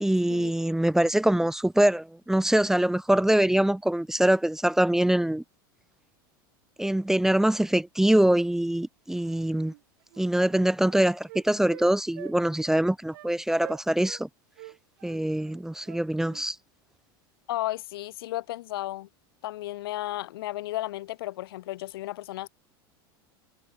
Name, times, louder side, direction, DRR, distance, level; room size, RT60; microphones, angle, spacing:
voice 1, 0.0-5.4 6.8-9.7 10.2-14.3 15.0-16.6, right 1 dB, 5° right, 0.7 m, -24 dB
Wind instrument woodwind instrument, 9.7-9.8 10.1-11.9 12.2-12.4 12.6-12.8 13.1-13.3 13.6-14.2 14.6-16.5, right 20 dB, 75° right, 2.3 m, -45 dB
voice 2, 17.5-19.1 19.4-22.5, left 16 dB, 85° left, 1.2 m, -33 dB
supercardioid pair, 125°, 12 cm